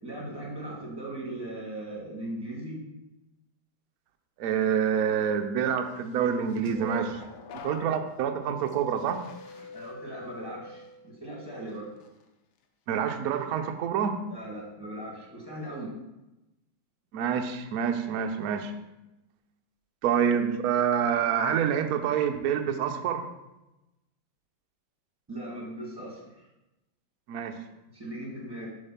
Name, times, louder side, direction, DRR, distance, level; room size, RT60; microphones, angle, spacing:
voice 1, 0.0-2.8 9.5-11.9 14.3-15.9 25.3-26.5 27.9-28.7, right 1 dB, 10° right, -4 dB, 1.8 m, -39 dB
voice 2, 4.4-7.2 7.6-9.2 12.9-14.2 17.1-18.7 20.0-23.2 27.3-27.6, right 8 dB, 70° right, 6 dB, 0.8 m, -27 dB
sound 1, 6.2-11.2 11.7-12.1, left 5 dB, 85° left, 1.5 m, -44 dB
6.8 x 3.5 x 5.7 m, 0.97 s
omnidirectional pair, 2.1 m